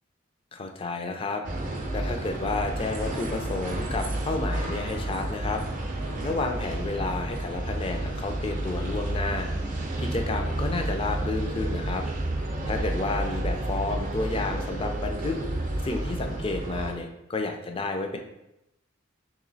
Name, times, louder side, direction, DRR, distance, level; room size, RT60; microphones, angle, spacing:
voice 1, 0.5-1.4 1.9-5.6 6.2-9.5 10.0-12.0 12.7-15.4 15.8-18.2, left 3 dB, 25° left, 4 dB, 0.4 m, -31 dB
sound 1, 1.4-16.9, right 1 dB, 40° right, 0.6 m, -31 dB
3.1 x 3.0 x 3.9 m, 0.88 s
head